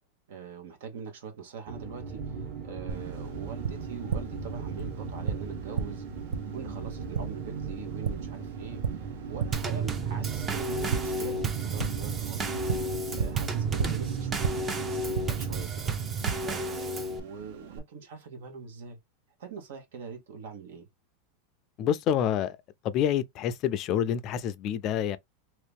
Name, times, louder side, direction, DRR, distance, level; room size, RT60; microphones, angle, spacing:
voice 1, 0.3-6.0 6.5-12.6 13.1-19.0 19.4-20.9, right 6 dB, 80° right, 1.2 m, -43 dB
sound 1, 1.7-15.6, right 5 dB, 45° right, 1.4 m, -38 dB
Tap, 2.9-17.8, right 6 dB, 60° right, 0.8 m, -37 dB
Drum kit / Snare drum / Bass drum, 9.5-17.2, right 3 dB, 15° right, 0.5 m, -32 dB
voice 2, 21.8-22.6 22.8-25.2, left 9 dB, 35° left, 0.4 m, -27 dB
3.0 x 2.8 x 3.5 m
supercardioid pair, 160°, 0 cm